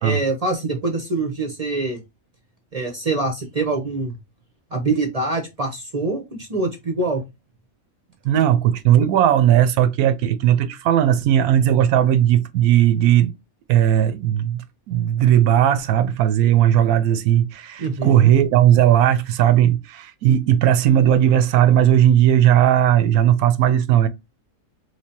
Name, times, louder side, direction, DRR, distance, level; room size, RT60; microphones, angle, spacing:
voice 1, 0.0-2.0 2.7-4.2 4.7-7.2 17.8-18.3, right 3 dB, 40° right, 0.6 m, -24 dB
voice 2, 8.2-13.3 13.7-24.1, right 11 dB, 85° right, 1.1 m, -17 dB
3.2 x 3.1 x 2.8 m
omnidirectional pair, 1.5 m